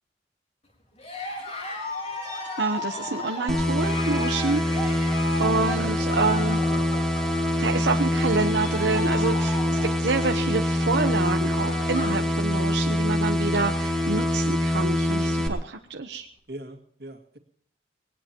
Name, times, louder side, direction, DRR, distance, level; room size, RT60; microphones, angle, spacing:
Cheering, 1.0-12.2 12.5-13.0 13.4-13.5 13.7-14.5, left 2 dB, 35° left, 4.1 m, -36 dB
voice 1, 2.6-4.9 5.4-6.6 7.6-16.3, right 3 dB, 85° right, 4 dB, 0.9 m, -27 dB
sound 1, 3.5-15.5, left 1 dB, ahead, 1.9 m, -25 dB
voice 2, 16.5-17.4, right 1 dB, 60° right, 6 dB, 2.2 m, -40 dB
20.0 x 18.5 x 3.0 m, 0.64 s
head